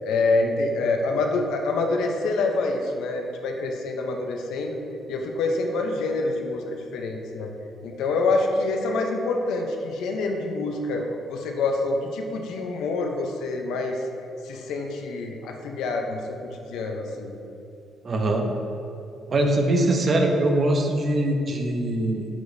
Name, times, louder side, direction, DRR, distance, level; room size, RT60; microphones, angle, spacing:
voice 1, 0.0-4.8 5.1-7.5 7.8-14.0 14.5-16.4 16.7-17.3, left 3 dB, 85° left, 3 dB, 0.7 m, -26 dB
voice 2, 18.0-18.4 19.3-22.3, right 1 dB, 45° right, 3 dB, 0.8 m, -22 dB
9.1 x 4.9 x 2.7 m, 2.8 s
cardioid pair, 90°, 0 cm